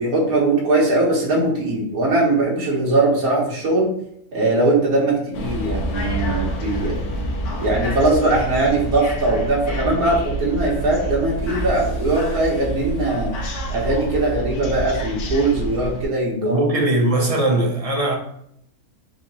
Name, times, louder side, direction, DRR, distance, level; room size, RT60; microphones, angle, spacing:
voice 1, 0.0-3.9 4.3-7.0 7.6-13.3 13.7-16.6, right 2 dB, 75° right, 1.7 m, -20 dB
sound 1, 5.3-16.0, right 1 dB, 85° left, 1.3 m, -27 dB
voice 2, 16.3-18.1, right 1 dB, 45° right, 0.4 m, -20 dB
4.2 x 2.8 x 4.1 m
omnidirectional pair, 1.6 m